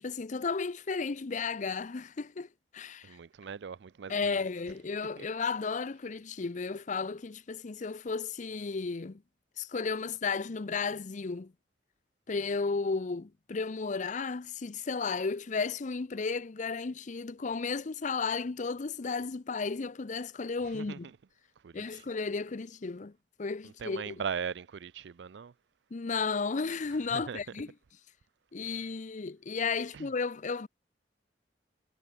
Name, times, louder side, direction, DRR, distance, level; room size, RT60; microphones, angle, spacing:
voice 1, 0.0-2.5 2.7-3.2 4.1-9.2 9.6-11.5 12.3-21.1 21.7-23.1 23.4-24.1 25.9-27.7 28.5-30.7, left 4 dB, 45° left, 0.6 m, -34 dB
voice 2, 3.0-4.5 5.2-5.3 20.6-21.2 21.6-22.0 23.6-25.5 27.1-27.4 28.7-28.8 29.9-30.1, right 6 dB, 80° right, 0.4 m, -40 dB
head